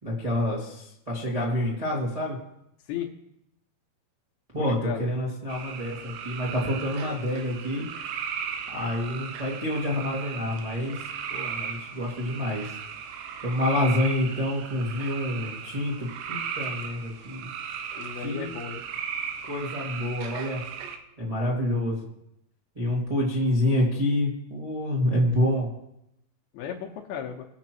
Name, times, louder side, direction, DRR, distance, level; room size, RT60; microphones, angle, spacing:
voice 1, 0.0-2.4 4.5-7.8 8.7-11.0 11.3-12.7 13.4-17.5 18.2-18.5 19.4-20.6 21.2-22.0 22.7-25.7, left 1 dB, 30° right, -6 dB, 0.6 m, -27 dB
voice 2, 4.6-5.1 18.0-18.8 26.5-27.5, left 9 dB, 75° left, 0 dB, 2.7 m, -35 dB
sound 1, 5.5-21.0, right 7 dB, 90° right, 3.2 m, -36 dB
21.5 x 7.2 x 3.0 m, 0.83 s
omnidirectional pair, 5.0 m